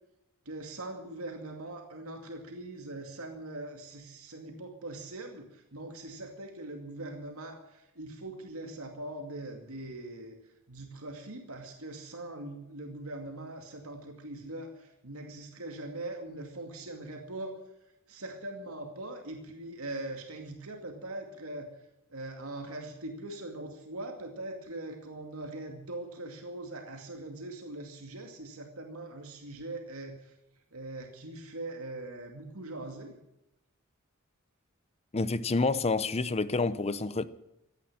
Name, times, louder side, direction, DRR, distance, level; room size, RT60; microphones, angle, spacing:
voice 1, 0.5-10.4 10.7-17.6 18.1-21.7 22.1-30.3 30.7-33.1, right 2 dB, 80° right, 2.4 m, -41 dB
voice 2, 35.1-37.3, left 3 dB, 30° left, 0.6 m, -28 dB
16.0 x 10.5 x 8.7 m
head